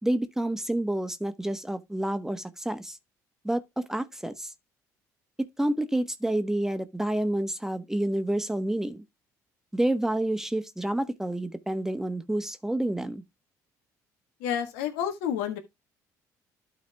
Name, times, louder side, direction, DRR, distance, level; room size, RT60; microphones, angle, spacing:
voice 1, 0.0-3.0 3.4-4.5 5.4-9.0 9.7-13.2, right 1 dB, 5° right, 1.1 m, -29 dB
voice 2, 14.4-15.6, left 9 dB, 80° left, 1.5 m, -29 dB
12.0 x 4.1 x 3.4 m
hypercardioid pair, 65°, 8 cm